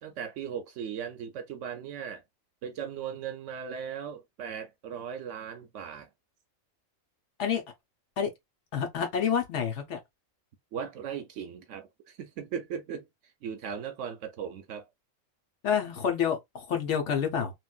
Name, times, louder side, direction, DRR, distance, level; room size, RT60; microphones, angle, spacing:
voice 1, 0.0-2.2 2.6-6.1 10.7-13.1 13.4-14.9, right 7 dB, 70° right, 0.9 m, -38 dB
voice 2, 8.7-10.0 15.6-17.5, left 7 dB, 65° left, 1.1 m, -28 dB
3.1 x 2.6 x 2.3 m
omnidirectional pair, 1.4 m